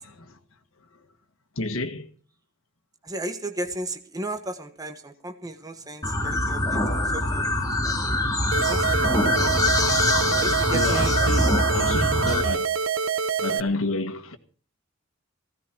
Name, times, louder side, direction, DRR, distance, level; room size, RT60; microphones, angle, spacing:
voice 1, 1.5-2.1 10.7-12.7 13.4-14.4, left 2 dB, 80° left, 1.7 m, -30 dB
voice 2, 3.0-7.9 8.6-9.0 9.3-9.9 10.3-11.4, right 2 dB, 20° right, 1.2 m, -35 dB
sound 1, 6.0-12.4, left 1 dB, 20° left, 3.0 m, -23 dB
sound 2, 8.5-13.6, right 6 dB, 90° right, 0.8 m, -26 dB
16.0 x 15.5 x 4.5 m
head